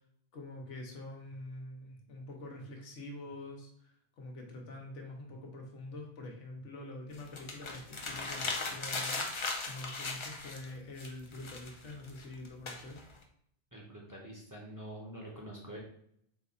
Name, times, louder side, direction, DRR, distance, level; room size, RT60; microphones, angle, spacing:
voice 1, 0.3-13.0, left 2 dB, 90° left, 1 dB, 1.2 m, -46 dB
sound 1, 7.1-10.7 11.0-13.2, left 3 dB, 45° left, 0.4 m, -38 dB
voice 2, 13.7-15.8, right 1 dB, 20° right, -3 dB, 0.7 m, -46 dB
3.9 x 2.4 x 4.0 m, 0.68 s
omnidirectional pair, 1.2 m